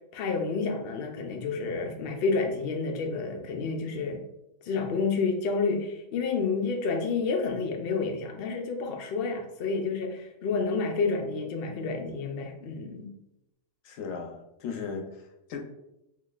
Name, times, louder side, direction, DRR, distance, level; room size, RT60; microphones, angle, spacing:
voice 1, 0.0-4.2 4.6-13.1, left 4 dB, 60° left, 2 dB, 0.7 m, -29 dB
voice 2, 13.8-15.6, left 5 dB, 80° left, 3 dB, 1.0 m, -37 dB
3.8 x 3.0 x 2.3 m, 0.88 s
omnidirectional pair, 1.4 m